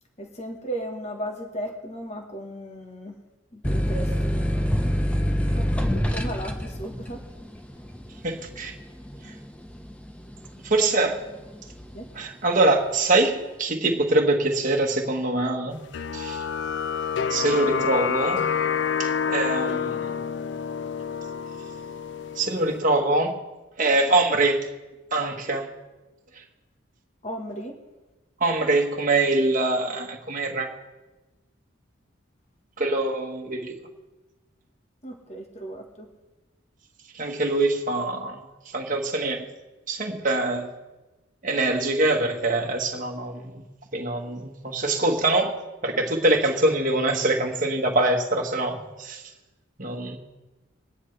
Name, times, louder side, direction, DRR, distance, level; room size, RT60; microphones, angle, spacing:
voice 1, 0.2-3.2 3.5-4.8 5.6-7.3 11.9-12.1 27.2-27.8 35.0-36.1, right 1 dB, 35° left, 1 dB, 1.4 m, -36 dB
sound 1, 3.6-10.9 11.4-12.1, equal, 5° left, 0.7 m, -26 dB
voice 2, 8.2-8.7 9.2-9.3 10.6-11.2 12.1-15.8 16.1-16.4 17.3-18.4 19.0-20.0 22.4-23.4 23.8-24.7 25.1-25.7 28.4-30.7 32.8-33.7 37.1-38.4 38.7-39.4 39.9-40.7 41.4-43.6 43.9-45.6 45.8-49.2 49.8-50.2, right 2 dB, 40° right, 1 dB, 1.4 m, -24 dB
sound 2, 15.9-22.8, left 7 dB, 60° left, 0.4 m, -28 dB
22.5 x 10.0 x 3.3 m, 1.1 s
head